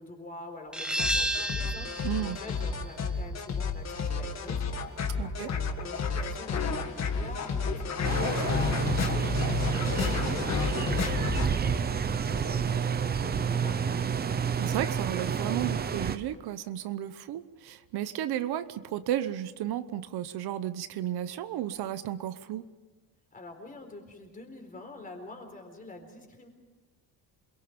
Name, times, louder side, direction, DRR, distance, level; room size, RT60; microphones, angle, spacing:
voice 1, 0.0-14.1 23.3-26.5, left 2 dB, 20° left, 3 dB, 4.2 m, -46 dB
sound 1, 0.7-6.1, equal, ahead, 1.2 m, -35 dB
sound 2, 1.0-11.5, left 5 dB, 40° left, 1.8 m, -31 dB
voice 2, 2.0-2.4 5.2-5.5 14.6-22.6, right 12 dB, 75° right, 12 dB, 1.0 m, -33 dB
sound 3, 8.0-16.2, right 7 dB, 25° right, 0.7 m, -29 dB
28.0 x 22.5 x 5.3 m, 1.2 s
cardioid pair, 175°, 39 cm